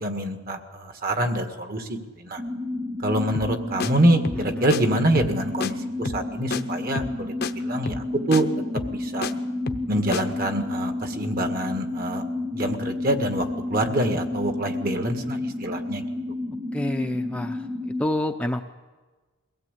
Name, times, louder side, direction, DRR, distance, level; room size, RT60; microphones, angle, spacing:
voice 1, 0.0-2.4 3.0-8.5 8.9-9.3 9.9-12.3 12.5-16.0, right 1 dB, 45° right, 6 dB, 1.9 m, -26 dB
sound 1, 2.4-18.1, left 2 dB, 25° right, 1.6 m, -31 dB
sound 2, 3.3-3.5 3.8-3.9 4.2-4.4 4.7-4.8 5.1-5.4 5.6-5.7 6.0-6.3 6.5-6.6 7.0-7.2 7.4-7.5 7.9-8.1 8.3-8.4 8.8-9.3 9.7-9.9 10.1-10.2, left 4 dB, 50° left, 0.8 m, -30 dB
voice 2, 16.7-17.7 18.0-18.6, left 1 dB, 5° left, 4 dB, 0.7 m, -28 dB
22.5 x 16.5 x 8.3 m, 1.3 s
head